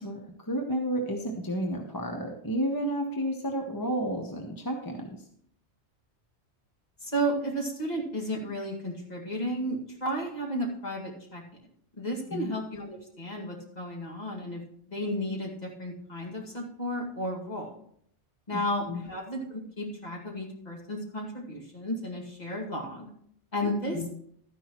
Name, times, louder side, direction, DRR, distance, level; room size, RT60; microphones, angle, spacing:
voice 1, 0.0-5.2 12.3-12.5 18.5-19.0 23.9-24.1, equal, 20° left, 2 dB, 0.9 m, -32 dB
voice 2, 7.0-11.4 12.0-14.6 14.9-17.7 18.5-23.1 23.5-24.1, equal, 35° left, -2 dB, 2.2 m, -33 dB
12.5 x 9.9 x 3.0 m, 0.68 s
omnidirectional pair, 1.2 m